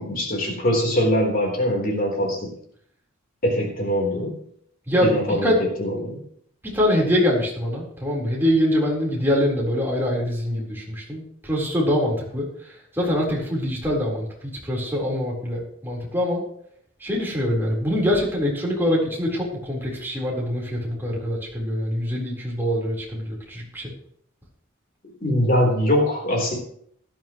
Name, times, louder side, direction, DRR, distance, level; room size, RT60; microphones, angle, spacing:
voice 1, 0.0-2.5 3.4-4.4 5.0-5.5 5.8-6.2 25.2-26.5, equal, 45° left, 0 dB, 3.8 m, -22 dB
voice 2, 6.7-16.4 17.0-23.9, equal, 10° right, -3 dB, 4.1 m, -24 dB
17.5 x 12.0 x 3.1 m, 0.63 s
head